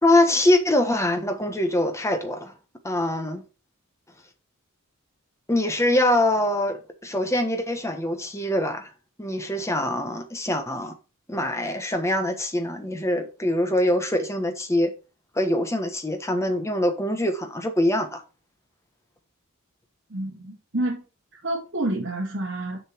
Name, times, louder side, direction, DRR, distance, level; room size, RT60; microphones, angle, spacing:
voice 1, 0.0-2.5 2.8-3.4 5.5-8.9 9.2-10.9 11.3-14.9 15.3-18.2, left 1 dB, 15° left, 1.3 m, -23 dB
voice 2, 20.1-21.0 21.3-22.8, right 1 dB, 55° right, 2.5 m, -29 dB
6.9 x 5.7 x 4.5 m
head